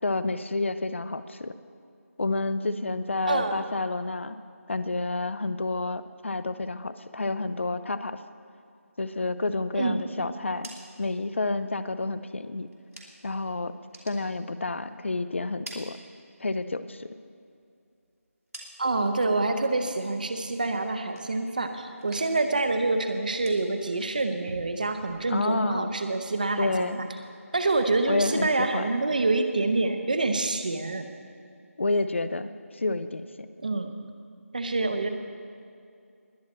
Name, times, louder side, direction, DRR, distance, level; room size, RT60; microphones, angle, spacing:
voice 1, 0.0-1.5 2.2-4.4 4.7-8.2 9.0-10.7 11.0-12.7 13.2-13.8 14.1-16.0 16.4-17.1 25.3-25.9 26.6-27.0 28.1-28.9 31.8-33.5, left 2 dB, 55° left, 13 dB, 0.6 m, -29 dB
sound 1, 10.3-13.4 13.7-15.1 15.4-16.7 17.0-19.2 19.5-20.0 20.4-21.7 21.9-22.6 22.8-25.7, right 1 dB, 85° right, 2.7 m, -50 dB
voice 2, 18.8-27.1 27.5-31.1 33.6-33.9 34.5-35.1, right 2 dB, 35° right, 7 dB, 0.8 m, -26 dB
21.0 x 8.8 x 4.3 m, 2.4 s
figure-of-eight pair, 175°, 8 cm